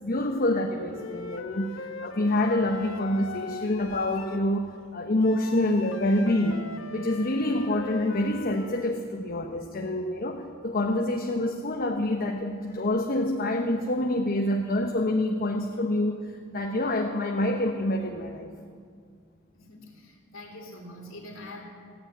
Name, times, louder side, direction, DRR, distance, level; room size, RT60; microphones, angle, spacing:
voice 1, 0.0-6.6 6.9-18.5, left 1 dB, 45° left, 3 dB, 1.0 m, -27 dB
Wind instrument woodwind instrument, 0.9-4.4 5.2-9.0, left 3 dB, 75° left, 0.9 m, -41 dB
voice 2, 19.5-21.6, left 1 dB, 90° left, -1 dB, 2.8 m, -44 dB
16.0 x 9.6 x 8.9 m, 2.2 s
head